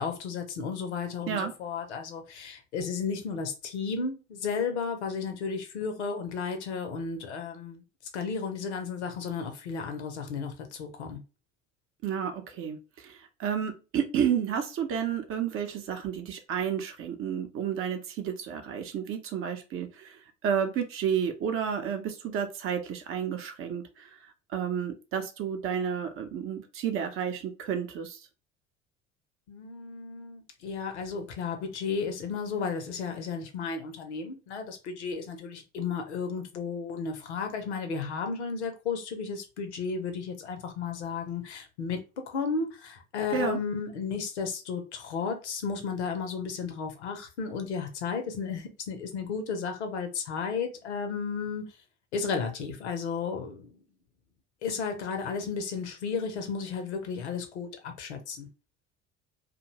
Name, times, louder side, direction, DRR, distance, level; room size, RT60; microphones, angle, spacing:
voice 1, 0.0-7.8 8.1-11.2 29.5-42.0 42.3-51.7 52.1-53.7 54.6-58.5, left 5 dB, 75° left, 0.7 m, -33 dB
voice 2, 12.0-28.2 43.3-43.6, right 8 dB, 40° right, 0.7 m, -31 dB
2.5 x 2.2 x 2.9 m
figure-of-eight pair, 60°, 34 cm